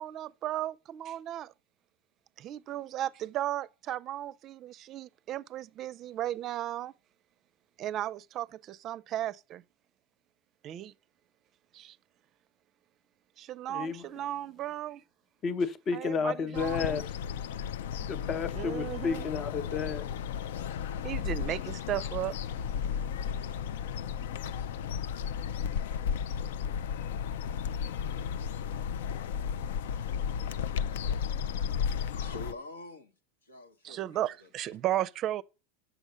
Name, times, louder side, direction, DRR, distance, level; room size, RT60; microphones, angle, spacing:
voice 1, 0.0-1.5 2.4-6.9 7.8-9.6 10.6-10.9 11.7-12.0 13.4-15.0 15.9-17.0 18.5-19.3 21.0-22.4 33.8-35.4, right 13 dB, 45° right, 0.5 m, -35 dB
voice 2, 13.7-14.0 15.4-17.0 18.1-20.1, left 5 dB, 40° left, 0.8 m, -31 dB
sound 1, 16.5-32.5, left 7 dB, 75° left, 0.4 m, -34 dB
voice 3, 31.8-33.1 33.4-34.8, left 2 dB, 90° left, 1.4 m, -47 dB
7.2 x 6.9 x 6.6 m
hypercardioid pair, 85°, 0 cm